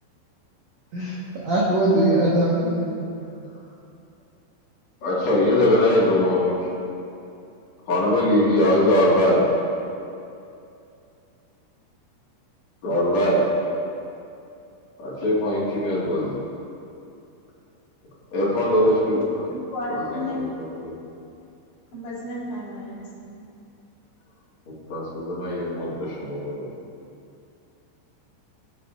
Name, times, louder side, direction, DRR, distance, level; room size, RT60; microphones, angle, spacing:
voice 1, 0.9-3.3, right 1 dB, 70° right, -7 dB, 1.6 m, -22 dB
voice 2, 5.0-6.7 7.9-9.4 12.8-13.4 15.0-16.4 18.3-19.5 19.9-21.0 24.7-26.7, left 1 dB, 45° left, -7 dB, 2.5 m, -21 dB
voice 3, 19.5-20.5 21.9-23.3, left 1 dB, 70° left, -7 dB, 5.1 m, -32 dB
20.0 x 7.7 x 2.6 m, 2.6 s
omnidirectional pair, 5.6 m